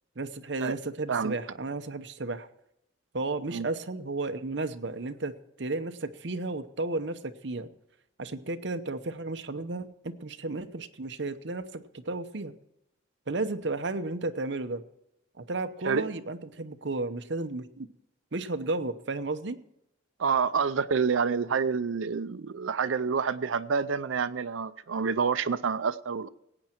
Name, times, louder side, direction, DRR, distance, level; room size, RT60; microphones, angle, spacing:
voice 1, 0.2-2.5 3.1-5.3 5.6-7.7 8.2-12.5 13.3-14.8 15.4-17.9 18.3-19.6, right 2 dB, 60° right, 0.9 m, -33 dB
voice 2, 20.2-26.3, right 5 dB, 85° right, 0.5 m, -28 dB
18.0 x 8.8 x 4.5 m
head